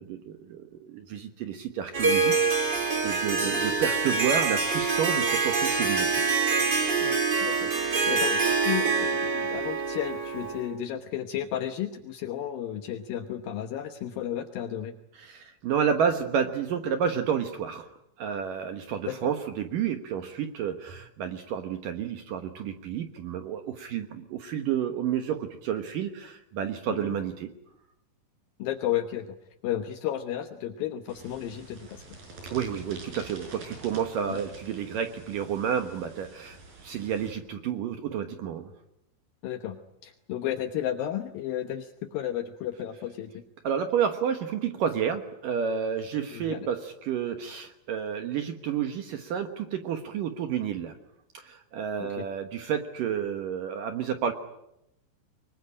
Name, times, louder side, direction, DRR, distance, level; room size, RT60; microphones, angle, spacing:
voice 1, 0.0-6.2 15.2-17.9 18.2-27.5 32.5-36.6 36.8-38.7 43.6-50.9 51.3-54.3, right 8 dB, 75° right, 7 dB, 2.0 m, -30 dB
Harp, 1.9-10.7, right 4 dB, 25° right, 3.1 m, -25 dB
voice 2, 7.0-7.7 8.1-14.9 19.1-19.2 26.9-27.1 28.6-29.4 29.6-32.0 34.3-34.4 39.4-43.4 46.3-46.7 52.0-52.3, left 11 dB, 75° left, 7 dB, 2.1 m, -33 dB
sound 1, 31.1-37.3, right 2 dB, 45° right, 7.5 m, -47 dB
25.0 x 22.5 x 10.0 m, 0.84 s
omnidirectional pair, 5.7 m